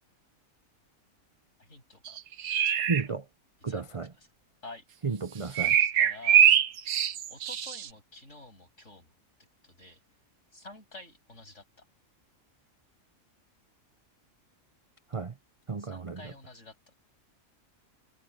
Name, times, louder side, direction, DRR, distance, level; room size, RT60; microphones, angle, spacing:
voice 1, 1.6-2.2 2.6-2.8 3.7-4.3 4.6-4.9 5.8-6.4 7.3-9.1 9.6-10.0 10.5-11.8 15.8-17.0, left 2 dB, 55° left, 7.6 m, -49 dB
sound 1, 2.1-3.0 5.6-7.9, right 9 dB, 90° right, 1.4 m, -23 dB
voice 2, 2.9-3.2 3.6-4.1 5.0-5.8 15.1-15.3 15.7-16.3, right 4 dB, 35° right, 0.6 m, -32 dB
omnidirectional pair, 1.5 m